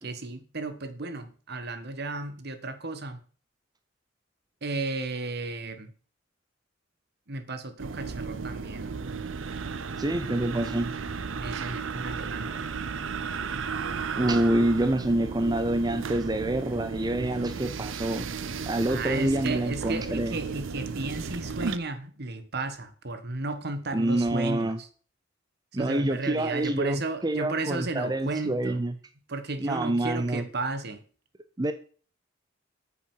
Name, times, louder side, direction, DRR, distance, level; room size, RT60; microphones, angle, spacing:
voice 1, 0.0-3.2 4.6-5.9 7.3-9.0 11.3-12.6 18.9-24.9 25.7-28.8 29.3-31.0, right 3 dB, 55° right, 1.4 m, -34 dB
sound 1, 7.8-21.8, right 5 dB, 75° right, 0.7 m, -34 dB
voice 2, 10.0-10.9 14.2-18.3 18.7-20.4 23.9-24.8 25.7-28.9 29.6-30.5 31.6-31.7, right 1 dB, 20° right, 0.6 m, -27 dB
9.2 x 6.9 x 7.3 m
head